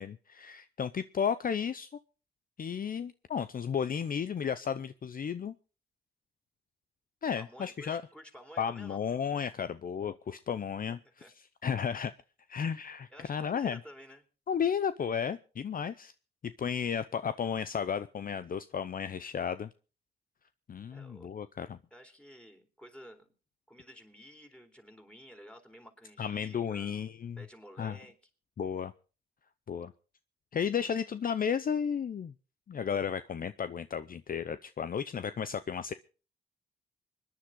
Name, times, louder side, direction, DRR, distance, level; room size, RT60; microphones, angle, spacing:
voice 1, 0.0-1.9 2.6-5.5 7.2-8.0 8.6-11.0 11.6-12.1 12.5-13.8 14.5-16.1 16.4-19.7 20.7-21.8 26.2-27.4 27.8-28.0 28.6-28.9 29.7-29.9 30.5-32.3 32.7-35.9, left 7 dB, 45° left, 13 dB, 0.6 m, -33 dB
voice 2, 7.4-9.0 10.9-11.3 13.1-14.2 20.9-21.3 21.9-23.3 23.7-27.0 27.4-28.1, equal, 5° left, 4 dB, 3.9 m, -52 dB
26.0 x 10.5 x 3.8 m, 0.37 s
cardioid pair, 70°, 19 cm